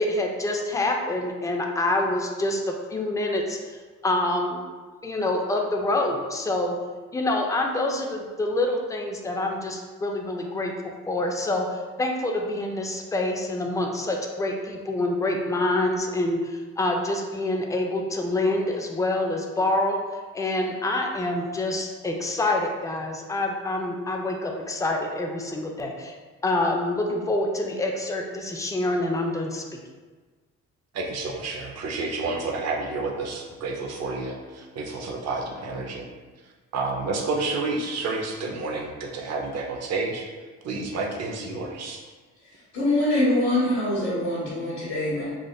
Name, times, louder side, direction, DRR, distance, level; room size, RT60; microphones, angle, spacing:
voice 1, 0.0-3.6 4.0-4.7 5.0-6.8 7.1-20.0 20.3-26.2 26.4-29.6, left 2 dB, 10° left, 2 dB, 0.3 m, -26 dB
voice 2, 30.9-36.1 36.7-40.3 40.6-42.0, right 3 dB, 55° right, 1 dB, 0.6 m, -30 dB
voice 3, 42.7-45.3, left 1 dB, 65° left, -10 dB, 1.1 m, -24 dB
3.4 x 2.4 x 2.2 m, 1.4 s
cardioid pair, 90°, 30 cm